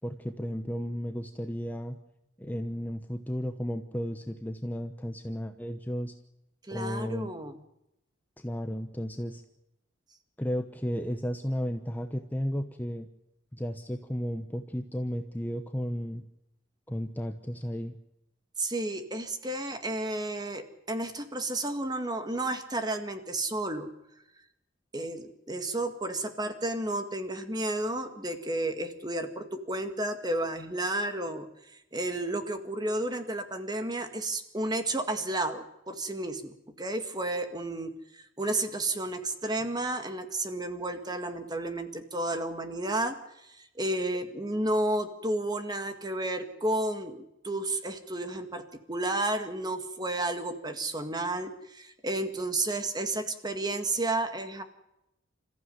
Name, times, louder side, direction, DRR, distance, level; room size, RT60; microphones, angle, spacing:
voice 1, 0.0-2.0 2.4-6.1 6.7-7.3 8.4-9.4 10.4-13.1 13.5-16.2 16.9-17.9, equal, 10° left, 6 dB, 0.9 m, -34 dB
voice 2, 6.7-7.6 18.6-23.9 24.9-31.5 31.9-48.6 48.9-54.6, right 2 dB, 20° right, 7 dB, 1.9 m, -32 dB
27.5 x 14.5 x 9.4 m, 0.88 s
head